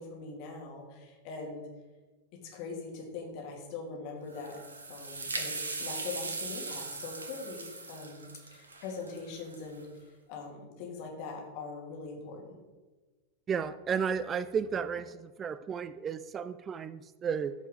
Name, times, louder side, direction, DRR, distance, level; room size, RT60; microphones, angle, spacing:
voice 1, 0.0-1.7 2.3-4.6 4.9-12.6, left 4 dB, 45° left, 0 dB, 2.4 m, -42 dB
sound 1, 4.3-9.8, right 3 dB, 75° right, 1.2 m, -39 dB
voice 2, 13.5-17.5, right 6 dB, 25° right, 14 dB, 0.3 m, -33 dB
14.0 x 5.5 x 3.8 m, 1.3 s
figure-of-eight pair, 90°, 0 cm